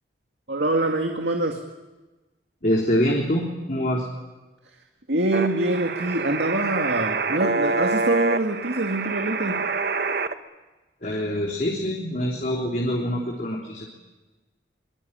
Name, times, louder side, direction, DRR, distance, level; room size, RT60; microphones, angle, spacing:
voice 1, 0.5-1.6 5.1-9.6, right 2 dB, 80° right, 2 dB, 2.2 m, -25 dB
voice 2, 2.6-4.1 11.0-13.9, equal, 45° left, -1 dB, 3.4 m, -25 dB
sound 1, 5.3-10.3, right 4 dB, 60° right, 1.2 m, -26 dB
25.0 x 23.5 x 8.9 m, 1.2 s
head